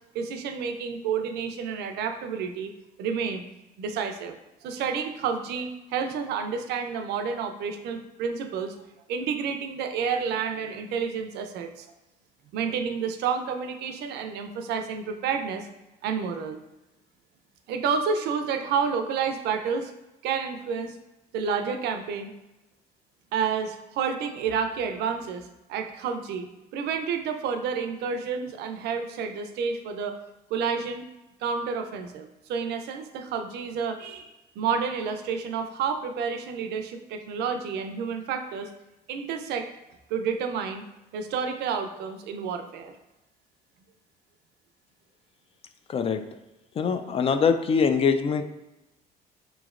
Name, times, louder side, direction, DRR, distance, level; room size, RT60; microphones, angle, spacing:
voice 1, 0.1-2.7 3.0-3.4 3.8-4.3 4.6-8.7 9.1-11.9 12.5-15.7 16.0-16.6 17.7-19.9 20.2-21.0 21.3-22.3 23.3-30.2 30.5-31.0 31.4-38.7 39.1-39.7 40.1-40.8 41.1-42.9, right 6 dB, 75° right, 7 dB, 0.5 m, -30 dB
voice 2, 46.8-48.4, left 6 dB, 35° left, 8 dB, 0.3 m, -23 dB
4.9 x 3.1 x 2.4 m, 0.98 s
cardioid pair, 110°, 17 cm